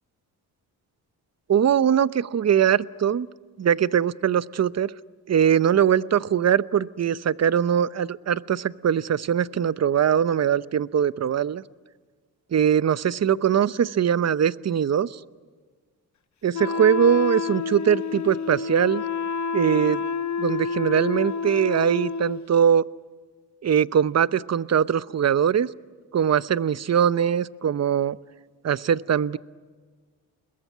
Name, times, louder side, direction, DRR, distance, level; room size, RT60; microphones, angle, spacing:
voice 1, 1.5-3.3 3.6-4.9 5.3-11.6 12.5-15.2 16.4-19.0 19.5-20.0 20.4-22.8 23.6-25.7 26.1-28.2 28.6-29.4, right 8 dB, 40° right, 16 dB, 0.8 m, -21 dB
Wind instrument woodwind instrument, 16.5-22.5, left 5 dB, 45° left, 0.9 m, -29 dB
30.0 x 21.0 x 9.4 m, 1.4 s
supercardioid pair, 60°, 41 cm